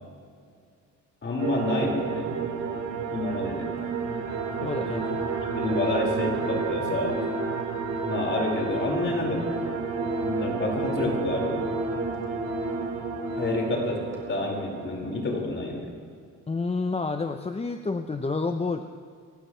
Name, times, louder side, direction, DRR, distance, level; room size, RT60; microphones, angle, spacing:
voice 1, 1.2-2.3 3.1-3.7 4.9-5.0 5.5-7.2 8.1-9.5 10.2-11.7 13.4-14.0 14.3-15.9, left 2 dB, 40° left, -1 dB, 5.5 m, -28 dB
sound 1, 1.4-15.4, right 6 dB, 65° right, 2.6 m, -31 dB
Organ, 3.8-3.9 4.2-13.8 14.1-14.3, left 2 dB, 10° right, 3.8 m, -35 dB
voice 2, 4.6-5.0 16.5-18.8, left 3 dB, 20° left, 6 dB, 0.8 m, -29 dB
28.0 x 15.0 x 3.4 m, 2.2 s
cardioid pair, 90°, 30 cm